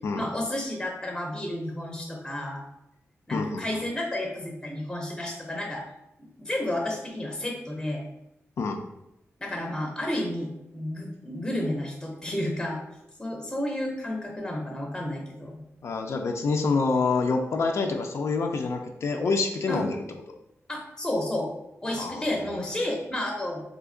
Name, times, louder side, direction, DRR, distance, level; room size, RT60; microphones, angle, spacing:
voice 1, 0.1-2.6 3.3-5.8 6.2-8.0 9.4-12.8 13.2-15.6 19.7-19.8 20.7-21.5 21.8-23.6, left 1 dB, 10° left, 0 dB, 0.5 m, -31 dB
voice 2, 3.3-3.8 8.6-8.8 15.8-20.0 22.0-22.4, left 4 dB, 65° left, 3 dB, 0.4 m, -27 dB
2.7 x 2.5 x 3.7 m, 0.88 s
wide cardioid pair, 95°, 5 cm